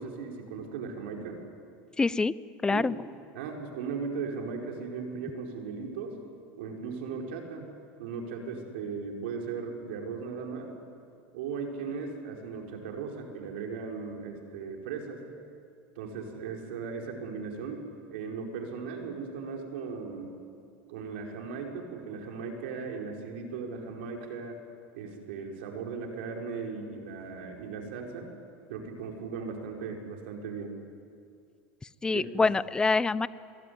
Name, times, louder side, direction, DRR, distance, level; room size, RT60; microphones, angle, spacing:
voice 1, 0.0-1.4 2.7-2.9 3.3-6.2 6.6-7.7 8.0-10.8 11.3-15.2 15.9-17.8 18.1-20.3 20.9-24.6 24.9-28.3 28.7-30.8 32.1-32.5, right 5 dB, 80° right, 1 dB, 5.1 m, -37 dB
voice 2, 2.0-2.3 2.6-2.9 32.0-33.3, left 3 dB, 15° left, 18 dB, 0.6 m, -25 dB
25.0 x 22.0 x 9.7 m, 2.4 s
supercardioid pair, 125°, 6 cm